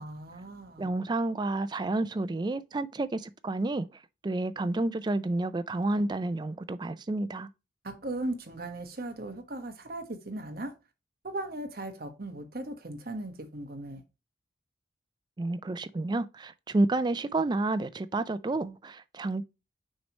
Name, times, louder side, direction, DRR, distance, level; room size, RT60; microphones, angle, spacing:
voice 1, 0.0-0.9 7.8-10.7 11.2-14.0, right 1 dB, 50° right, 1.1 m, -38 dB
voice 2, 0.8-7.5 15.4-19.4, right 2 dB, 25° right, 0.3 m, -30 dB
6.3 x 3.0 x 5.2 m
head